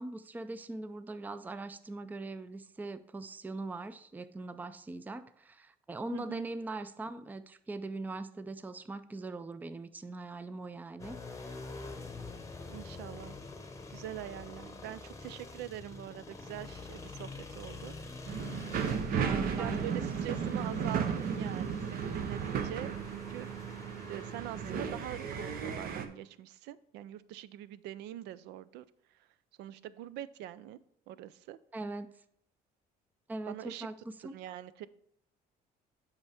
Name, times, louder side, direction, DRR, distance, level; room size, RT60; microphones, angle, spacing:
voice 1, 0.0-11.2 19.2-19.9 20.4-20.8 31.7-32.1 33.3-34.4, right 2 dB, 10° right, 12 dB, 0.4 m, -41 dB
voice 2, 6.1-6.5 12.7-13.4 13.9-17.9 19.1-23.5 24.1-28.9 29.2-29.3 29.6-30.8 31.1-31.6 33.5-33.9 34.2-34.9, right 13 dB, 85° right, 17 dB, 0.4 m, -44 dB
sound 1, 11.0-25.8, left 3 dB, 20° left, 0.9 m, -47 dB
sound 2, 18.3-26.0, right 7 dB, 60° right, 0.8 m, -34 dB
8.1 x 5.6 x 3.4 m, 0.69 s
cardioid pair, 110°, 17 cm